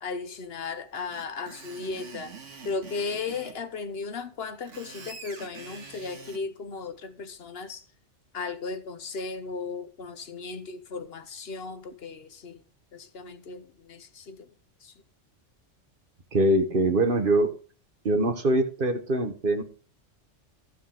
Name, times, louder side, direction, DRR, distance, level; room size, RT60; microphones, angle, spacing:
voice 1, 0.0-2.3 2.6-7.9 8.3-12.6 12.9-14.5 14.8-14.9, left 4 dB, 60° left, 1.1 m, -36 dB
Screech, 1.1-3.6 4.5-6.4, right 4 dB, 90° right, 1.9 m, -45 dB
voice 2, 16.3-17.5 18.0-19.6, right 1 dB, 50° right, 1.4 m, -23 dB
14.0 x 6.7 x 3.8 m
omnidirectional pair, 1.2 m